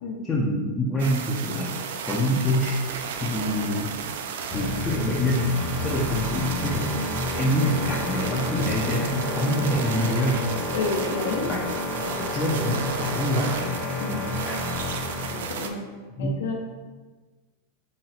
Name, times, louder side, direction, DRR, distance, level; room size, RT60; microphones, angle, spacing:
voice 1, 0.3-1.7 2.1-3.9 4.5-6.9 7.3-10.4 11.4-11.6 12.2-13.5 14.5-14.6 16.2-16.3, left 1 dB, 10° left, -6 dB, 0.4 m, -26 dB
sound 1, 1.0-15.7, right 6 dB, 70° right, 0.3 m, -34 dB
sound 2, 4.5-15.5, left 2 dB, 25° left, 0.8 m, -30 dB
voice 2, 10.7-11.5 12.3-12.4 14.0-14.3 15.3-15.8 16.2-16.5, left 3 dB, 70° left, 0 dB, 0.7 m, -30 dB
4.0 x 2.1 x 3.9 m, 1.3 s
supercardioid pair, 170°, 0 cm